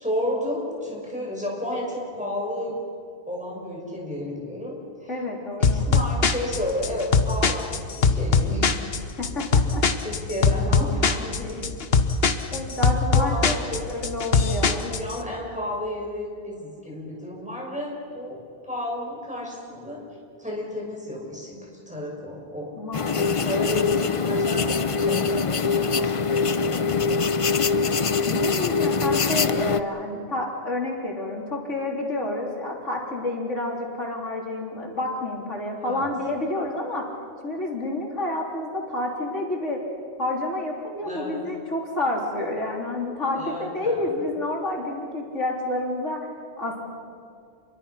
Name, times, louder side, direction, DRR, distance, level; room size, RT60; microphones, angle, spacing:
voice 1, 0.0-2.8 3.3-5.1 5.6-8.7 10.0-11.7 13.2-14.0 14.8-20.1 20.4-22.8 23.1-27.7 35.8-36.1 41.0-41.4 43.3-44.2, left 1 dB, 5° right, -3 dB, 6.1 m, -32 dB
voice 2, 5.1-5.9 9.2-9.8 12.5-13.6 13.9-14.9 22.7-23.6 28.2-37.1 37.4-39.8 40.2-46.3 46.6-46.9, left 2 dB, 90° left, -1 dB, 4.0 m, -29 dB
sound 1, 5.6-15.2, left 5 dB, 60° left, 1.3 m, -22 dB
sound 2, 22.9-29.8, left 5 dB, 35° left, 0.5 m, -23 dB
29.0 x 23.0 x 5.8 m, 2.4 s
omnidirectional pair, 1.2 m